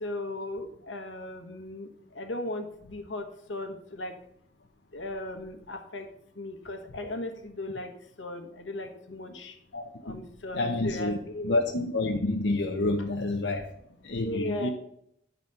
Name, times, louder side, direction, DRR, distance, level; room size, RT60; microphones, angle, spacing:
voice 1, 0.0-1.9 2.2-4.1 4.9-6.0 6.4-7.9 8.2-9.5 10.0-11.6 14.2-14.7, left 1 dB, 80° left, 6 dB, 1.2 m, -37 dB
voice 2, 9.7-10.2 10.5-13.7 14.0-14.7, left 2 dB, 65° left, 2 dB, 0.7 m, -29 dB
10.5 x 4.1 x 5.5 m, 0.73 s
head